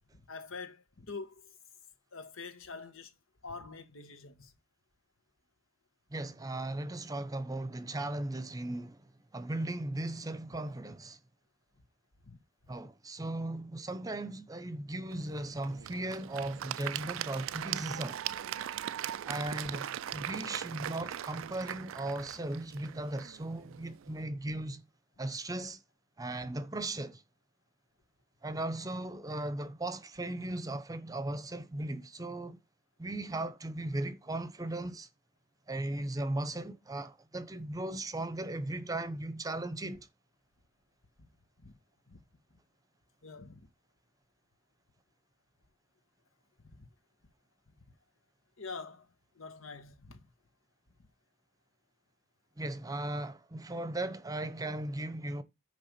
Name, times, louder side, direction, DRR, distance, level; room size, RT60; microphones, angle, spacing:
voice 1, 0.1-1.6 2.1-3.1 3.4-4.5 12.2-12.4 24.5-24.6 26.4-26.5 41.2-41.3 41.6-41.7 42.1-42.2 42.5-42.6 43.2-43.7 46.6-46.9 48.6-49.1 49.3-50.2, left 4 dB, 75° left, 1.5 m, -46 dB
voice 2, 6.1-11.2 12.7-18.2 19.2-19.9 20.1-24.8 25.2-25.8 26.2-27.2 28.4-32.6 33.0-35.1 35.7-40.1 52.6-55.4, right 2 dB, 20° right, 0.8 m, -37 dB
Applause / Crowd, 15.1-24.2, right 11 dB, 70° right, 0.4 m, -40 dB
9.9 x 3.5 x 6.9 m
head